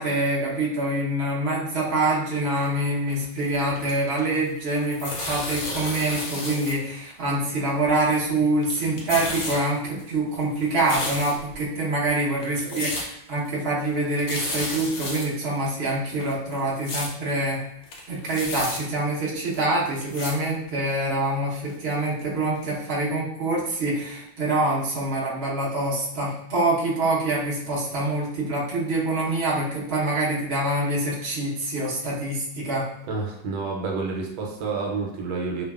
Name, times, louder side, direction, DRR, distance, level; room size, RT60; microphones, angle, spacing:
voice 1, 0.0-17.6 18.1-32.9, right 2 dB, 55° right, -7 dB, 0.6 m, -25 dB
sound 1, 3.2-4.4 4.7-6.8 7.0-7.1 7.8-8.4 8.6-9.6 10.0-11.5 12.1-12.2 12.4-13.1 13.4-13.5 13.8-13.9 14.1-15.3 15.7-15.8 16.1-17.1 17.5-17.6 17.8-18.8 19.5-19.6 20.0-20.3 20.9-21.0 21.7-21.8 22.2-22.3 22.6-22.7, left 2 dB, 70° left, 0.8 m, -32 dB
voice 2, 33.1-35.6, right 4 dB, 80° right, 0 dB, 1.4 m, -29 dB
3.1 x 2.2 x 2.3 m, 0.76 s
omnidirectional pair, 2.2 m